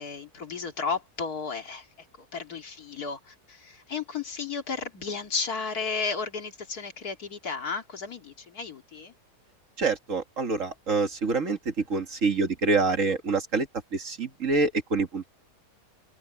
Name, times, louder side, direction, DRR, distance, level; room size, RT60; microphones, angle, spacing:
voice 1, 0.0-9.1, left 5 dB, 70° left, 2.8 m, -34 dB
voice 2, 9.8-15.3, right 3 dB, 50° right, 2.1 m, -26 dB
omnidirectional pair, 1.7 m